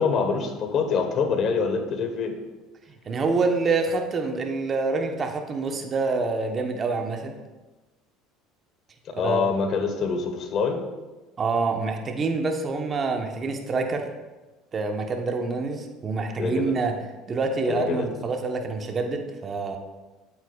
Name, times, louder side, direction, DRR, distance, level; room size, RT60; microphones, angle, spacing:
voice 1, 0.0-2.3 9.2-10.8 16.4-16.7 17.7-18.1, left 5 dB, 55° left, 6 dB, 1.2 m, -25 dB
voice 2, 3.0-7.3 9.1-9.4 11.4-14.1 14.7-16.9 17.3-19.8, right 3 dB, 35° right, 4 dB, 1.0 m, -26 dB
8.2 x 8.2 x 2.4 m, 1.2 s
supercardioid pair, 90°, 0 cm